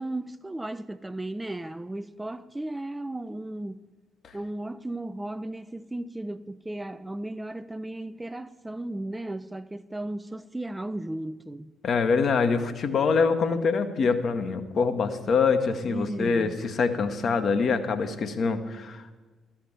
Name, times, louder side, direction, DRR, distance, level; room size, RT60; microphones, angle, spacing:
voice 1, 0.0-3.8 4.3-11.7 15.9-16.6, right 1 dB, 10° right, 0.3 m, -35 dB
voice 2, 11.8-19.1, left 5 dB, 45° left, 0.9 m, -25 dB
13.0 x 5.8 x 8.2 m
figure-of-eight pair, 45°, 0 cm